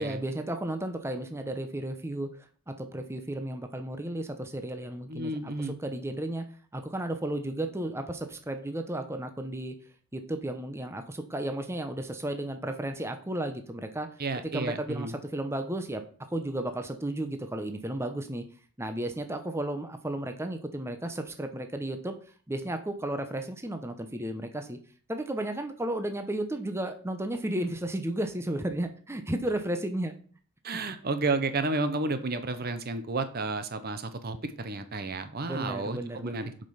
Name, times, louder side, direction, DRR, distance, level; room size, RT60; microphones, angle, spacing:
voice 1, 0.0-2.3 2.7-6.4 6.7-9.7 10.1-14.1 14.5-16.0 16.3-18.4 18.8-22.2 22.5-24.8 25.1-30.1 35.4-36.5, right 1 dB, 10° right, 7 dB, 0.8 m, -33 dB
voice 2, 5.1-5.8 14.2-15.1 30.6-36.7, right 3 dB, 45° right, 10 dB, 0.8 m, -32 dB
7.4 x 5.3 x 5.6 m, 0.43 s
head